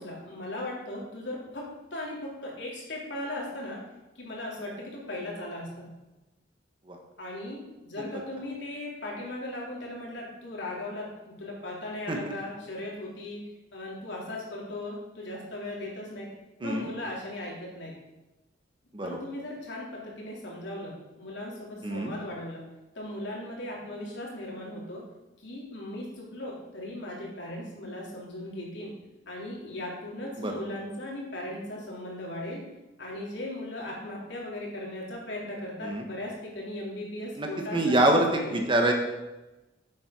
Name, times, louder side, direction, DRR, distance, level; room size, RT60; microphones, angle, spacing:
voice 1, 0.0-1.7 1.9-3.8 4.2-5.9 7.2-13.4 13.7-16.3 16.6-17.9 19.0-22.7 23.0-25.0 25.4-28.9 29.3-32.6 33.0-38.6, left 1 dB, 75° left, -3 dB, 3.5 m, -38 dB
voice 2, 37.4-38.9, right 1 dB, 25° right, 3 dB, 1.3 m, -25 dB
8.5 x 7.8 x 6.1 m, 1.0 s
head